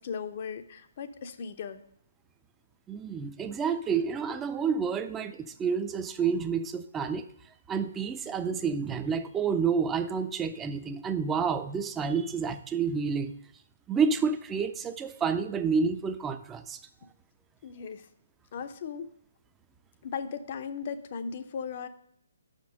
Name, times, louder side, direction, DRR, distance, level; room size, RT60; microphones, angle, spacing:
voice 1, 0.0-1.8 17.6-18.1 18.5-19.1 20.0-21.9, left 6 dB, 40° left, 10 dB, 0.5 m, -37 dB
voice 2, 2.9-7.2 7.7-13.3 13.9-16.8, right 6 dB, 10° right, 10 dB, 0.4 m, -29 dB
5.9 x 5.1 x 6.2 m, 0.69 s
figure-of-eight pair, 135°, 0 cm